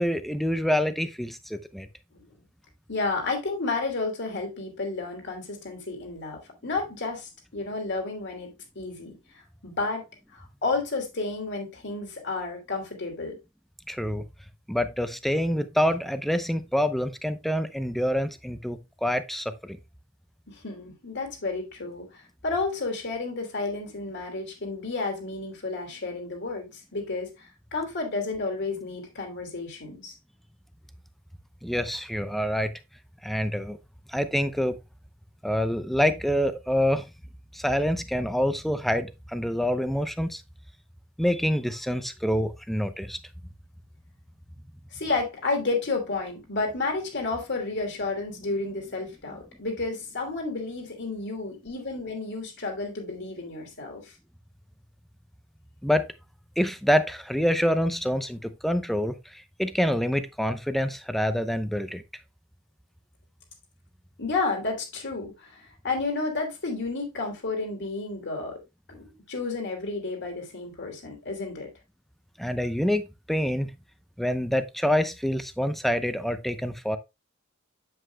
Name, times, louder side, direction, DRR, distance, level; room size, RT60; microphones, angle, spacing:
voice 1, 0.0-1.9 13.9-14.2 14.7-19.8 31.6-32.7 33.2-33.8 34.1-34.8 35.4-37.0 37.5-40.4 41.2-43.2 55.8-56.1 56.6-62.0 72.4-73.7 74.2-77.0, equal, ahead, 0.7 m, -26 dB
voice 2, 2.9-8.5 8.7-10.1 10.3-13.4 20.5-30.2 44.9-54.1 64.2-68.6 68.9-71.7, left 3 dB, 55° left, 3.0 m, -31 dB
8.1 x 7.8 x 2.2 m
head